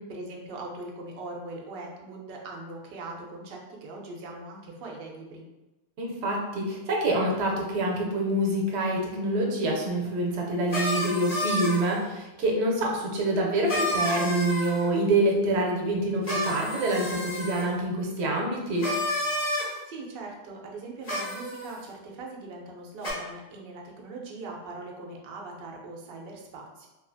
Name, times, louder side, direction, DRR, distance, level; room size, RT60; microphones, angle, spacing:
voice 1, 0.1-5.4 19.9-26.9, right 2 dB, 65° right, -1 dB, 0.7 m, -41 dB
voice 2, 6.0-18.9, right 1 dB, 85° right, -1 dB, 0.9 m, -26 dB
sound 1, 10.7-12.0 13.7-14.9 16.2-17.7 18.8-19.7 21.0-21.7 23.0-23.1, left 1 dB, 45° left, 1.2 m, -30 dB
2.7 x 2.4 x 2.5 m, 1.0 s
omnidirectional pair, 1.1 m